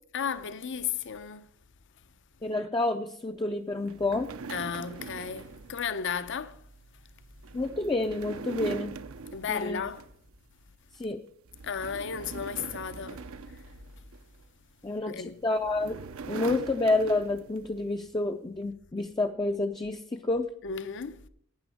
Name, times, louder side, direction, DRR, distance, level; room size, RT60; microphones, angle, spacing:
voice 1, 0.1-1.5 4.5-6.6 9.3-10.0 11.6-13.2 15.1-15.4 20.6-21.2, left 7 dB, 60° left, 0.7 m, -34 dB
voice 2, 2.4-4.3 7.5-9.0 9.5-9.8 11.0-11.2 14.8-16.0 16.3-20.5, left 2 dB, 20° left, 0.4 m, -29 dB
sound 1, 3.8-10.4 10.7-11.0 11.4-14.4 15.3-17.7, right 4 dB, 70° right, 0.6 m, -42 dB
12.0 x 9.2 x 5.0 m
head